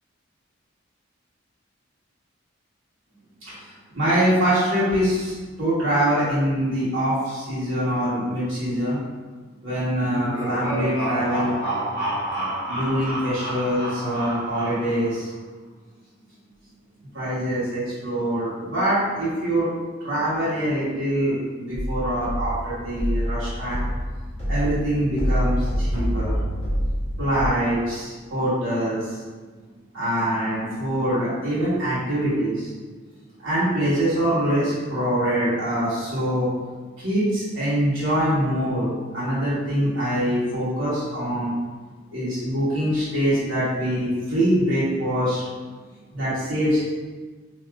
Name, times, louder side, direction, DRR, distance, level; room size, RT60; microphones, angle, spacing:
voice 1, 3.4-9.0 9.6-11.5 12.4-15.3 17.1-19.7 20.0-23.9 24.5-26.4 27.2-29.2 29.9-32.7 33.4-36.5 37.0-41.5 42.1-45.5 46.1-46.8, equal, 75° right, -11 dB, 1.4 m, -24 dB
sound 1, 10.0-15.1, right 1 dB, 50° right, 1.4 m, -29 dB
sound 2, 21.7-27.5, equal, 30° left, 1.2 m, -26 dB
4.5 x 2.8 x 2.5 m, 1.4 s
head